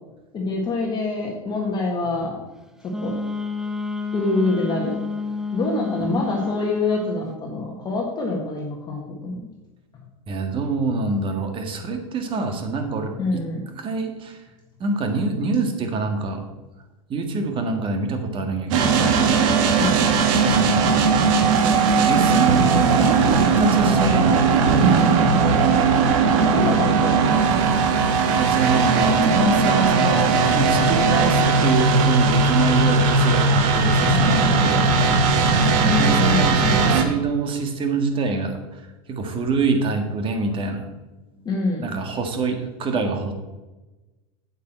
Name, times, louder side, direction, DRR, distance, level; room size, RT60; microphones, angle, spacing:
voice 1, 0.3-2.4 2.8-3.2 4.1-5.0 5.5-9.5 13.2-13.6 19.8-20.0 26.2-27.5 35.8-36.5 41.4-41.9, left 2 dB, 25° left, -1 dB, 1.6 m, -25 dB
Wind instrument woodwind instrument, 2.9-7.3, left 4 dB, 5° right, 0.5 m, -29 dB
voice 2, 10.3-13.4 13.7-14.5 14.8-16.4 17.1-19.2 20.4-21.0 22.0-24.6 28.3-35.7 36.0-40.8 41.3-41.5 41.8-43.3, right 4 dB, 30° right, 5 dB, 1.7 m, -26 dB
sound 1, 18.7-37.0, right 4 dB, 65° right, 1.6 m, -18 dB
8.6 x 8.4 x 4.5 m, 1.1 s
supercardioid pair, 130°, 18 cm